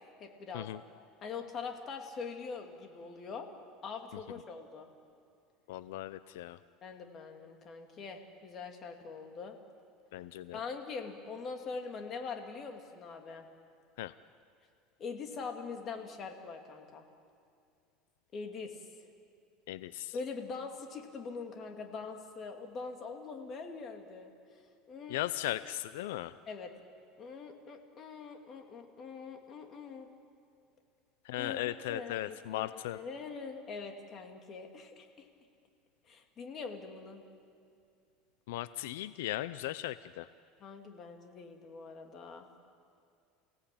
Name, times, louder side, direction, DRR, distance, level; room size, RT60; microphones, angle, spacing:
voice 1, 0.2-0.7 1.2-3.5 3.8-4.9 6.8-9.5 10.5-13.5 15.0-17.0 18.3-18.8 20.1-24.3 24.9-25.2 26.5-26.7 27.2-30.1 31.4-35.3 36.1-37.2 40.6-42.5, left 5 dB, 35° left, 4 dB, 2.7 m, -43 dB
voice 2, 5.7-6.6 10.1-10.6 14.0-14.1 19.7-20.2 25.1-26.4 31.2-33.0 38.5-40.3, left 14 dB, 90° left, 14 dB, 0.5 m, -37 dB
29.5 x 17.0 x 8.7 m, 2.4 s
supercardioid pair, 135°, 0 cm